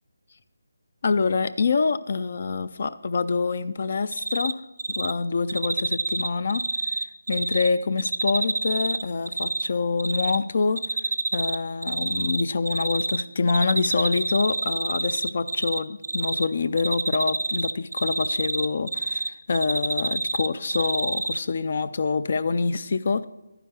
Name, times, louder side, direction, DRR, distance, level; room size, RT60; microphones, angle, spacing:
voice 1, 1.0-4.6 5.0-7.0 7.3-10.8 11.3-23.3, left 4 dB, 50° left, 15 dB, 0.4 m, -26 dB
Cricket, 4.1-4.5 4.8-5.1 5.5-7.7 8.0-9.7 10.0-10.4 10.8-11.6 11.8-13.2 13.5-16.4 16.8-19.3 19.5-21.4, right 3 dB, 70° right, 0.5 m, -27 dB
11.0 x 9.8 x 3.4 m, 0.98 s
figure-of-eight pair, 160°, 0 cm